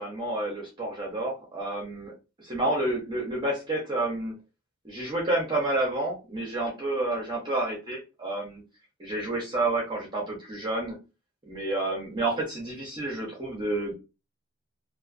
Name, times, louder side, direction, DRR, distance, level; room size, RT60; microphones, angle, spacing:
voice 1, 0.0-2.1 2.4-4.3 4.8-8.6 9.0-11.0 11.5-13.9, right 2 dB, 20° right, -3 dB, 0.6 m, -29 dB
2.4 x 2.3 x 2.4 m, 0.29 s
head